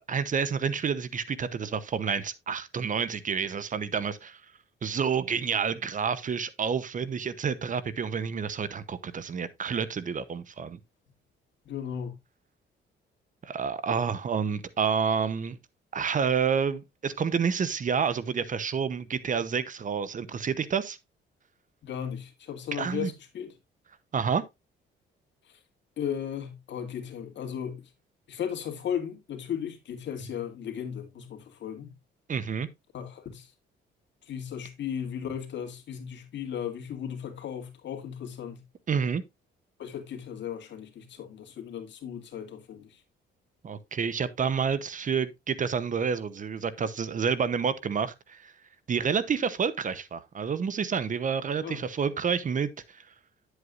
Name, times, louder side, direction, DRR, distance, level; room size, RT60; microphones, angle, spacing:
voice 1, 0.1-4.4 4.8-10.8 13.4-15.6 15.9-21.0 22.7-23.1 24.1-24.4 32.3-32.7 38.9-39.2 43.6-48.5 48.9-53.0, right 6 dB, 40° right, 0.9 m, -29 dB
voice 2, 11.7-12.2 21.8-23.5 26.0-27.8 28.3-31.9 32.9-33.5 34.2-38.6 39.8-43.0 51.6-51.8, left 8 dB, 65° left, 2.1 m, -36 dB
9.5 x 8.1 x 2.5 m
cardioid pair, 90°, 20 cm